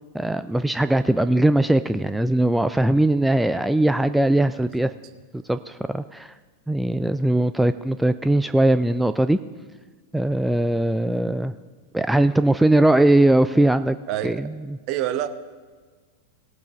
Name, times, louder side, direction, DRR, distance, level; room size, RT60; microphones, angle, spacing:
voice 1, 0.1-4.9 5.5-6.3 6.7-9.4 10.1-11.5 11.9-14.0 14.2-14.4, right 1 dB, 5° right, 0.3 m, -20 dB
voice 2, 4.5-4.9 6.8-6.9 14.1-14.4 14.9-15.3, right 12 dB, 40° right, 0.9 m, -28 dB
18.5 x 8.1 x 3.7 m
figure-of-eight pair, 90°, 0 cm